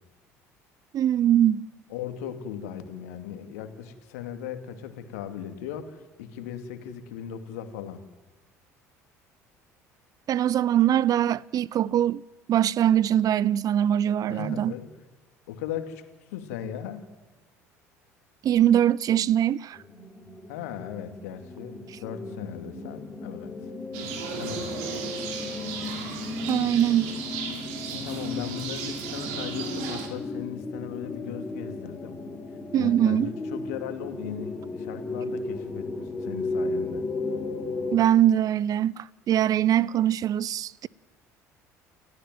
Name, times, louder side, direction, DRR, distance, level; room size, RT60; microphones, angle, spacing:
voice 1, 0.9-1.7 10.3-12.2 12.5-14.7 18.4-19.8 26.5-27.1 32.7-33.3 37.9-40.9, right 11 dB, 45° right, 0.7 m, -22 dB
voice 2, 1.9-8.0 14.3-14.9 15.5-16.0 16.3-17.1 20.5-23.5 24.4-24.8 27.9-32.2 32.7-37.0, left 9 dB, 75° left, 2.5 m, -37 dB
sound 1, 19.7-38.0, left 3 dB, 20° left, 3.5 m, -35 dB
sound 2, 23.9-30.1, right 6 dB, 70° right, 3.7 m, -35 dB
29.5 x 14.5 x 9.4 m
hypercardioid pair, 65°, 8 cm